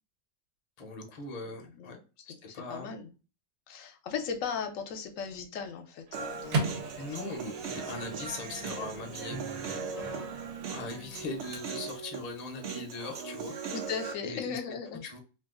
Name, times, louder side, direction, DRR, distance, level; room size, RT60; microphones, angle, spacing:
voice 1, 0.8-2.0 2.3-2.9 7.0-9.4 10.7-13.6 14.2-14.6 14.9-15.2, left 3 dB, 40° left, 3 dB, 0.6 m, -40 dB
voice 2, 1.4-3.1 3.7-6.8 7.2-7.3 7.9-8.0 10.0-10.3 13.7-15.0, left 6 dB, 75° left, 6 dB, 1.0 m, -38 dB
Human voice, 6.1-14.1, right 6 dB, 65° right, 0.8 m, -39 dB
Microwave oven, 6.1-12.1, right 3 dB, 90° right, 1.1 m, -38 dB
2.6 x 2.3 x 3.5 m, 0.33 s
omnidirectional pair, 1.4 m